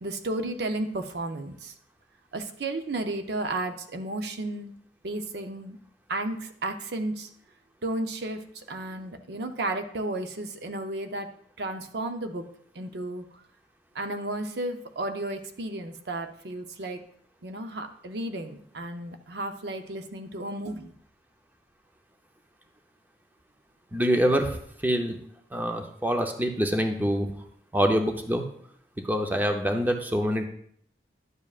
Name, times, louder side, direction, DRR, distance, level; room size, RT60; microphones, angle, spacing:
voice 1, 0.0-1.7 2.3-4.7 5.0-5.8 6.1-7.3 7.8-11.3 11.6-12.4 12.7-13.2 13.9-17.0 17.4-20.9, right 2 dB, 65° right, 6 dB, 0.7 m, -33 dB
voice 2, 23.9-25.2 25.5-27.3 27.7-28.4 29.0-30.5, equal, 10° right, 4 dB, 0.7 m, -25 dB
11.0 x 7.3 x 2.4 m, 0.64 s
head